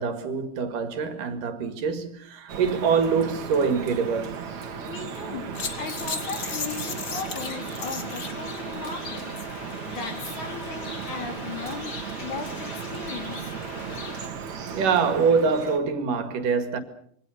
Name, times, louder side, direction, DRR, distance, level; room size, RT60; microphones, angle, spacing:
voice 1, 0.0-4.4 14.7-16.8, right 5 dB, 85° right, 3.7 m, -24 dB
Drip, 2.5-15.8, right 6 dB, 65° right, 3.5 m, -36 dB
voice 2, 4.9-13.5, left 4 dB, 65° left, 4.9 m, -37 dB
sound 1, 5.5-14.3, left 4 dB, 35° left, 2.6 m, -37 dB
26.5 x 24.0 x 6.5 m
omnidirectional pair, 3.7 m